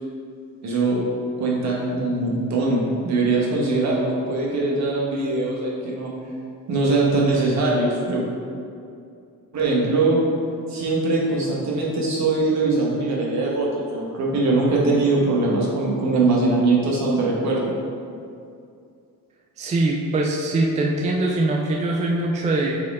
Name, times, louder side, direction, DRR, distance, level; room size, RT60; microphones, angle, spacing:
voice 1, 0.6-1.0 1.4-6.1 6.7-8.2 9.5-10.2 10.7-17.7, right 3 dB, 55° right, -4 dB, 1.3 m, -21 dB
voice 2, 19.6-22.8, right 2 dB, 20° right, -1 dB, 0.3 m, -22 dB
6.5 x 4.5 x 3.6 m, 2.4 s
cardioid pair, 175°, 33 cm